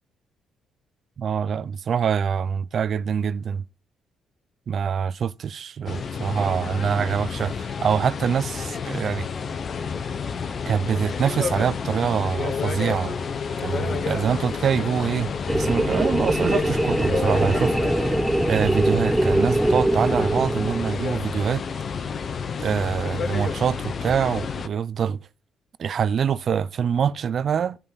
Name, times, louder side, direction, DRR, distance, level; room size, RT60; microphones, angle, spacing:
voice 1, 1.2-3.6 4.7-9.3 10.7-13.2 13.6-18.1 18.5-21.6 22.6-25.2 25.8-27.8, right 7 dB, 55° right, 0.5 m, -25 dB
sound 1, 5.9-24.7, left 6 dB, 50° left, 0.9 m, -30 dB
sound 2, 15.5-21.2, right 1 dB, 10° right, 0.6 m, -23 dB
14.0 x 5.5 x 4.0 m
cardioid pair, 90°, 0 cm